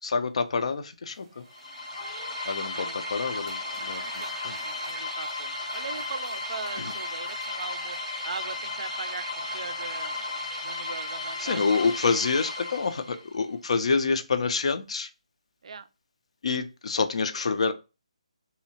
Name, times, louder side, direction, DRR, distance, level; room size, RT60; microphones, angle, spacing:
voice 1, 0.0-1.4 2.5-4.0 4.4-4.6 6.8-6.9 11.4-15.1 16.4-17.7, left 4 dB, 60° left, 0.4 m, -27 dB
Applause / Crowd, 1.1-12.0, right 2 dB, 25° right, 0.6 m, -50 dB
sound 1, 1.5-13.3, left 2 dB, 75° left, 0.8 m, -34 dB
voice 2, 2.7-3.0 3.9-10.1 10.6-11.8 15.6-15.9, right 5 dB, 60° right, 0.3 m, -40 dB
2.7 x 2.0 x 2.7 m
hypercardioid pair, 160°, 4 cm